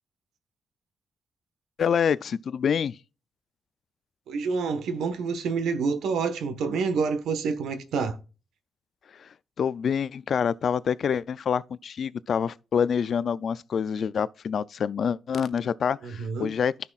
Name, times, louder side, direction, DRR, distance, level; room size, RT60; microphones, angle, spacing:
voice 1, 1.8-3.0 9.2-9.3 9.6-16.7, left 7 dB, 45° left, 0.3 m, -26 dB
voice 2, 4.3-8.2 16.0-16.5, right 5 dB, 85° right, 1.2 m, -28 dB
15.0 x 5.8 x 2.4 m
wide cardioid pair, 175°, 0 cm